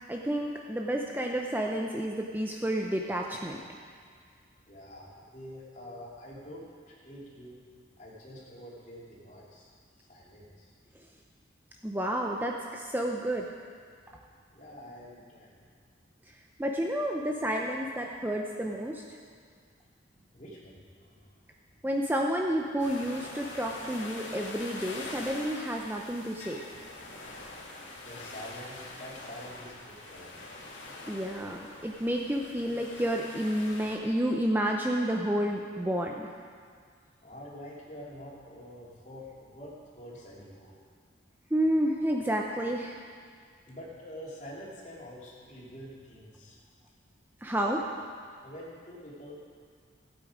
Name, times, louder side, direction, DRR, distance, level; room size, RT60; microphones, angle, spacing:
voice 1, 0.1-3.6 11.8-13.6 16.6-19.0 21.8-26.6 31.1-36.3 41.5-43.0 47.4-47.8, equal, 10° right, 0 dB, 0.5 m, -30 dB
voice 2, 4.7-7.6 8.0-9.7 10.0-10.7 14.5-15.7 20.1-21.4 28.0-30.6 37.2-40.8 43.6-46.6 48.4-49.4, equal, 40° left, -5 dB, 2.8 m, -46 dB
sound 1, 22.8-34.0, left 2 dB, 75° left, 2.1 m, -44 dB
16.0 x 8.6 x 5.0 m, 2.1 s
head